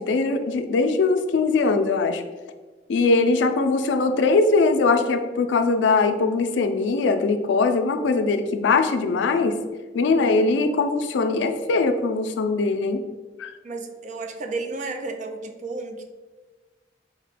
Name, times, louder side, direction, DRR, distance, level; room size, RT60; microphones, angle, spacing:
voice 1, 0.0-2.2 2.9-9.6 9.9-13.0 13.4-13.5, left 3 dB, 85° left, 8 dB, 0.4 m, -21 dB
voice 2, 13.6-16.1, right 3 dB, 45° right, 5 dB, 0.4 m, -32 dB
4.4 x 2.2 x 4.0 m, 1.3 s
head